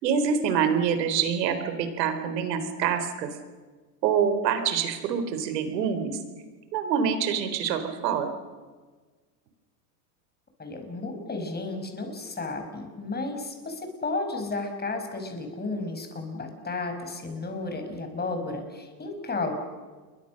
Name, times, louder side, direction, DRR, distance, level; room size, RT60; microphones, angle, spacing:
voice 1, 0.0-3.3 4.0-6.2 6.7-8.3, right 7 dB, 85° right, 8 dB, 4.0 m, -26 dB
voice 2, 10.6-19.5, left 3 dB, 20° left, 5 dB, 5.9 m, -33 dB
29.5 x 23.0 x 6.6 m, 1.4 s
supercardioid pair, 105°, 49 cm